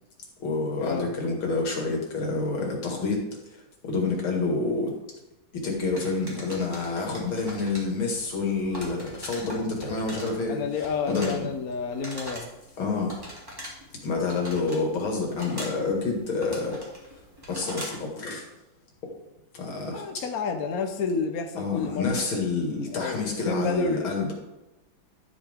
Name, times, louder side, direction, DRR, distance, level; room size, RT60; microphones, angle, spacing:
voice 1, 0.4-3.2 3.8-4.9 5.5-10.6 11.1-11.5 12.8-13.1 14.0-16.8 17.5-18.4 19.5-20.0 21.6-24.3, left 3 dB, 85° left, 0 dB, 3.0 m, -28 dB
sound 1, 6.0-18.1, equal, 10° right, 2.9 m, -43 dB
voice 2, 10.5-12.5 19.9-22.2 22.9-24.3, left 4 dB, 50° left, 5 dB, 1.3 m, -30 dB
12.0 x 8.5 x 3.7 m, 0.97 s
omnidirectional pair, 2.2 m